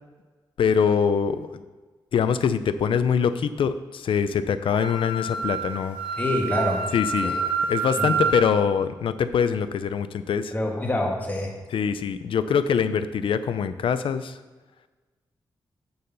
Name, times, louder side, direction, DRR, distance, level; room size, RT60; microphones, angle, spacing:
voice 1, 0.6-1.6 2.1-6.0 6.9-7.3 7.7-10.5 11.7-14.4, left 7 dB, 75° left, 12 dB, 0.5 m, -24 dB
Wind instrument woodwind instrument, 4.7-8.4, right 4 dB, 70° right, 1.8 m, -27 dB
voice 2, 6.2-6.8 7.2-7.4 8.0-8.1 10.5-11.5, left 1 dB, 20° left, -1 dB, 1.6 m, -26 dB
6.8 x 5.6 x 6.7 m, 1.3 s
wide cardioid pair, 130°, 9 cm